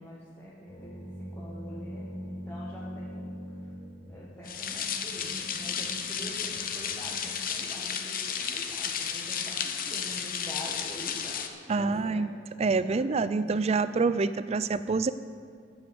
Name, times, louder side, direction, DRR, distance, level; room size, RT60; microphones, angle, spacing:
voice 1, 0.0-3.3 3.6-3.7 4.1-12.2 12.9-13.0, left 1 dB, 10° left, -7 dB, 1.4 m, -45 dB
sound 1, 0.7-7.3, equal, 25° left, 2.0 m, -42 dB
sound 2, 4.5-11.5, left 7 dB, 50° left, 0.8 m, -33 dB
voice 2, 11.7-12.3 12.6-15.1, right 4 dB, 35° right, 14 dB, 0.4 m, -26 dB
11.5 x 7.1 x 7.7 m, 2.3 s
head